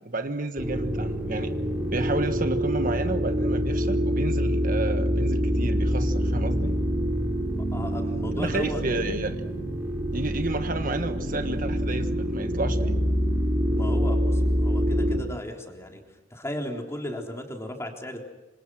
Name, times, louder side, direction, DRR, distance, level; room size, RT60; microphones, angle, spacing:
voice 1, 0.0-1.5 1.9-6.7 8.3-9.4 10.1-13.0, right 2 dB, 45° right, 7 dB, 1.4 m, -31 dB
sound 1, 0.6-15.2, equal, 10° right, 4.3 m, -26 dB
voice 2, 7.7-8.8 13.7-16.0 16.3-18.2, left 1 dB, 15° left, 2 dB, 3.7 m, -35 dB
27.0 x 26.5 x 6.4 m, 1.1 s
head